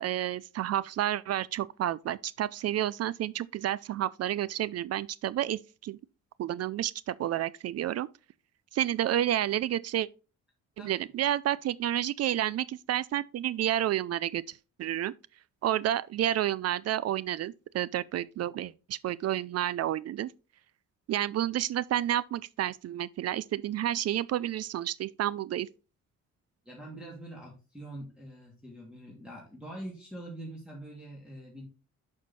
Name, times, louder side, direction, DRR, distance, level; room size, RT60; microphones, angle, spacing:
voice 1, 0.0-6.0 6.4-8.1 8.7-10.1 10.8-15.1 15.6-20.3 21.1-25.7, right 12 dB, 55° right, 0.4 m, -30 dB
voice 2, 26.6-31.7, right 1 dB, 5° right, 2.6 m, -44 dB
6.4 x 6.1 x 4.2 m
cardioid pair, 90°, 30 cm